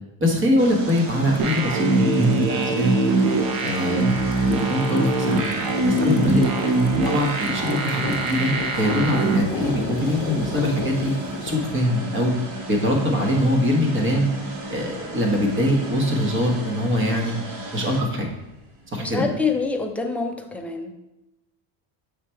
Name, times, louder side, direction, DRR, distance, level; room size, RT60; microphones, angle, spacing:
voice 1, 0.2-2.9 3.6-4.2 4.5-6.4 7.0-11.1 11.4-12.3 12.7-14.3 14.7-17.4 17.7-18.3 18.9-19.3, equal, 25° right, 1 dB, 1.3 m, -23 dB
sound 1, 0.6-19.7, right 2 dB, 70° right, 1.3 m, -35 dB
sound 2, 0.7-11.5, left 6 dB, 50° left, 0.9 m, -36 dB
sound 3, 1.4-9.4, right 2 dB, 50° right, 0.9 m, -22 dB
voice 2, 19.0-20.9, left 4 dB, 5° left, 2 dB, 0.4 m, -26 dB
7.0 x 3.3 x 4.5 m, 0.99 s
cardioid pair, 120°, 47 cm